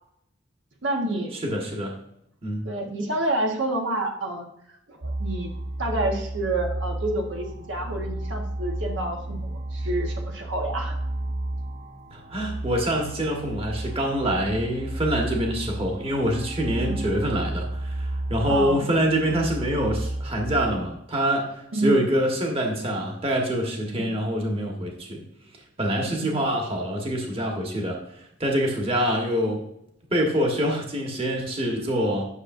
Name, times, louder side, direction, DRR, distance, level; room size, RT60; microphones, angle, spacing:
voice 1, 0.8-1.3 2.6-4.5 4.9-5.5 5.8-11.0 16.8-17.0 18.4-18.8 21.7-22.0 23.9-24.1 26.1-26.4, right 2 dB, 70° right, 1 dB, 1.3 m, -29 dB
voice 2, 1.4-1.9 2.4-2.7 12.1-25.2 25.8-29.7 30.1-32.3, equal, 30° right, 0 dB, 1.3 m, -25 dB
sound 1, 5.0-20.9, right 1 dB, 55° right, 0.8 m, -32 dB
9.7 x 6.4 x 2.6 m, 0.76 s
head